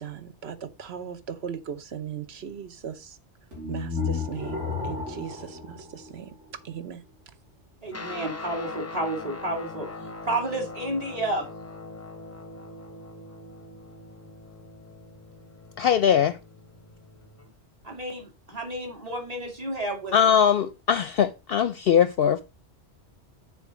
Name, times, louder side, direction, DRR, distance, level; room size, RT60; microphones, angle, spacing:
voice 1, 0.0-3.2 3.7-6.3 6.6-7.0, right 8 dB, 65° right, 1.1 m, -38 dB
sound 1, 3.5-6.7, left 4 dB, 90° right, 2.9 m, -33 dB
voice 2, 7.8-11.5 17.8-20.1, right 1 dB, 35° right, 2.4 m, -31 dB
Guitar, 7.9-17.5, left 2 dB, 15° left, 0.6 m, -41 dB
voice 3, 15.8-16.4 20.1-22.4, left 8 dB, 60° left, 0.7 m, -21 dB
7.0 x 4.3 x 6.1 m
omnidirectional pair, 1.2 m